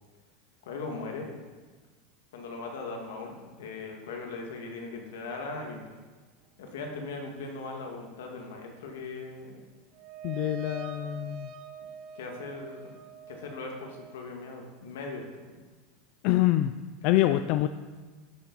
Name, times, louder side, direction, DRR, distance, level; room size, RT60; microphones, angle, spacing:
voice 1, 0.6-1.3 2.3-5.8 6.6-9.6 12.1-13.0 13.3-15.2 17.2-17.4, left 3 dB, 90° left, 2 dB, 2.0 m, -39 dB
sound 1, 9.9-14.1, right 6 dB, 55° right, 1.0 m, -44 dB
voice 2, 10.2-11.5 16.2-16.7 17.0-17.7, left 15 dB, 60° left, 11 dB, 0.4 m, -25 dB
11.5 x 7.3 x 4.1 m, 1.4 s
supercardioid pair, 130°, 0 cm